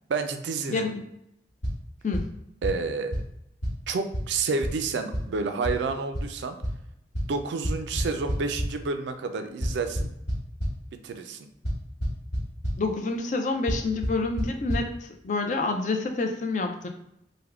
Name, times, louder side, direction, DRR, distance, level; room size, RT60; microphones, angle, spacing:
voice 1, 0.1-0.9 2.6-3.2 3.9-6.6 7.3-10.1 11.0-11.5, right 4 dB, 80° right, 7 dB, 0.4 m, -29 dB
voice 2, 0.7-1.0 2.0-2.3 12.8-16.9, left 3 dB, 45° left, 4 dB, 0.4 m, -28 dB
sound 1, 1.6-1.7 2.1-2.2 2.6-2.7 3.1-3.2 3.6-3.7 4.1-4.2 4.6-4.7 5.1-5.2 5.6-5.7 6.1-6.2 6.6-6.7 7.1-7.2 7.6-8.6 9.6-10.7 11.6-11.7 12.0-12.4 12.6-12.7 13.7-13.8 14.0-14.1 14.4-14.5 14.7-14.8, equal, 85° left, 1.3 m, -26 dB
3.4 x 2.2 x 3.4 m, 0.80 s
head